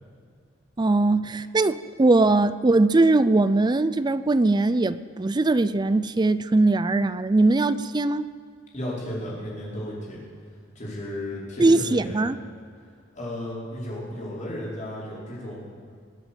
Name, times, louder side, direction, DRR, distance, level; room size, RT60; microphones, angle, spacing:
voice 1, 0.8-8.3 11.6-12.4, right 2 dB, 20° right, 14 dB, 0.4 m, -21 dB
voice 2, 8.7-10.2 10.8-12.3 13.1-15.6, left 1 dB, 40° left, -6 dB, 5.1 m, -34 dB
22.0 x 8.1 x 7.5 m, 2.2 s
head